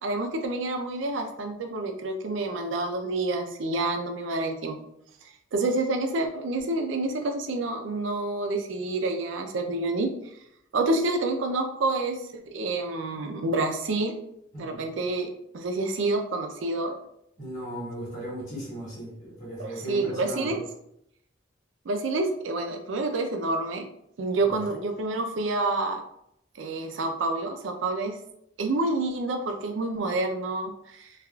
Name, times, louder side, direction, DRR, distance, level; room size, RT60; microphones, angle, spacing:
voice 1, 0.0-4.8 5.5-10.1 10.7-14.1 14.6-16.9 19.6-20.6 21.9-23.9 24.2-26.0 26.6-28.2 28.6-31.1, right 2 dB, 90° right, 5 dB, 0.5 m, -28 dB
voice 2, 14.5-14.9 17.4-20.6 24.4-24.5, right 1 dB, 45° left, -6 dB, 1.5 m, -37 dB
3.4 x 2.4 x 2.3 m, 0.75 s
head